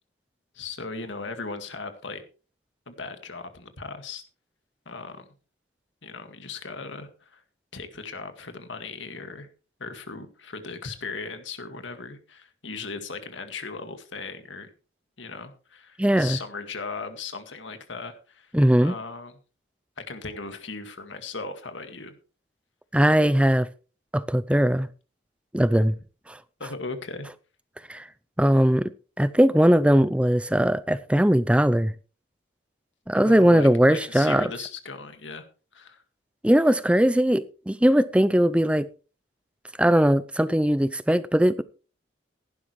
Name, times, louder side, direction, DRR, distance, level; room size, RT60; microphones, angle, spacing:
voice 1, 0.5-2.2 2.9-4.2 4.9-5.3 6.0-7.4 7.7-9.5 9.8-14.7 15.2-18.5 18.8-19.4 20.0-22.1 26.6-27.3 33.2-35.5 35.7-36.0, left 4 dB, 80° left, 2.0 m, -37 dB
voice 2, 16.0-16.4 18.5-19.0 22.9-23.7 24.1-24.9 25.5-25.9 26.3-26.4 27.9-28.1 28.4-28.9 29.2-31.9 33.1-34.5 36.4-38.9 39.8-41.6, equal, 5° right, 0.5 m, -20 dB
15.5 x 11.5 x 3.2 m
head